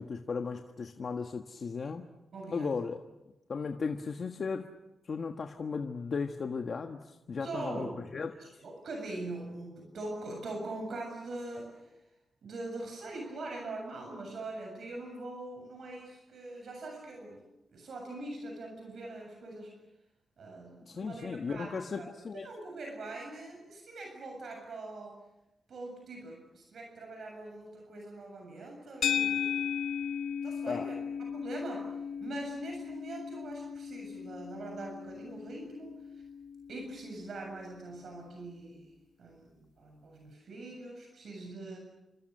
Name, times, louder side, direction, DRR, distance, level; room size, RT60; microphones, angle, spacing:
voice 1, 0.0-2.1 2.5-3.0 3.5-4.7 5.0-8.3 20.9-22.5 30.7-30.9, left 5 dB, 50° left, 4 dB, 1.5 m, -36 dB
voice 2, 2.3-2.8 7.4-8.0 8.4-11.9 12.4-17.4 17.7-19.7 20.4-22.1 22.3-25.2 25.7-29.6 30.4-31.0 31.3-31.9 32.2-36.2 36.7-38.9 39.2-41.8, right 2 dB, 65° right, 1 dB, 7.4 m, -42 dB
sound 1, 29.0-37.4, left 8 dB, 85° left, 1.2 m, -36 dB
29.5 x 26.0 x 6.7 m, 0.95 s
wide cardioid pair, 125°, 0 cm